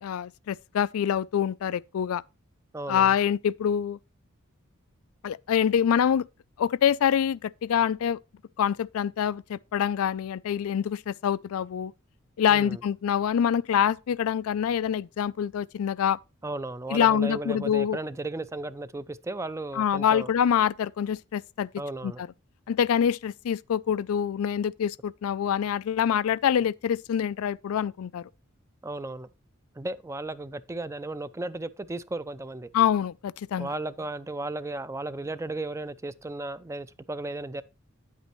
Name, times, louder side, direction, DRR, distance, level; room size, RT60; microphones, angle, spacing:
voice 1, 0.0-2.2 2.9-4.0 5.2-6.3 6.6-8.2 8.6-11.9 12.4-16.2 16.9-18.0 19.7-21.7 22.0-22.1 22.7-28.3 32.7-33.7, left 8 dB, 80° left, 0.3 m, -25 dB
voice 2, 2.7-3.2 12.5-12.8 16.4-20.3 21.8-22.2 28.8-29.3 29.8-32.7 33.6-37.6, right 2 dB, 15° right, 0.4 m, -35 dB
9.8 x 8.3 x 3.0 m
head